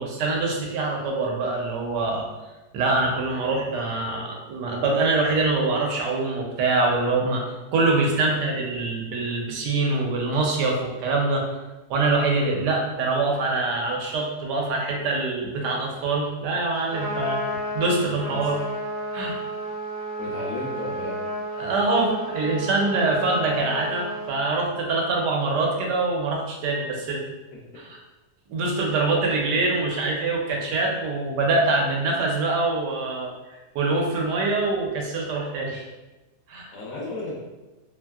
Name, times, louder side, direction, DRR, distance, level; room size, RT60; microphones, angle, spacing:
voice 1, 0.0-2.3 2.7-7.4 7.7-11.5 11.9-18.6 19.1-19.4 21.6-27.2 27.8-27.9 28.5-35.9 36.5-36.7, right 3 dB, 85° right, 0 dB, 1.2 m, -24 dB
voice 2, 7.9-8.4 17.9-18.5 20.2-21.2 27.7-27.8 36.7-37.4, left 2 dB, 70° left, -4 dB, 0.8 m, -35 dB
Trumpet, 16.7-24.3, right 1 dB, 65° right, 1.1 m, -32 dB
3.0 x 2.6 x 2.3 m, 1.1 s
omnidirectional pair, 1.8 m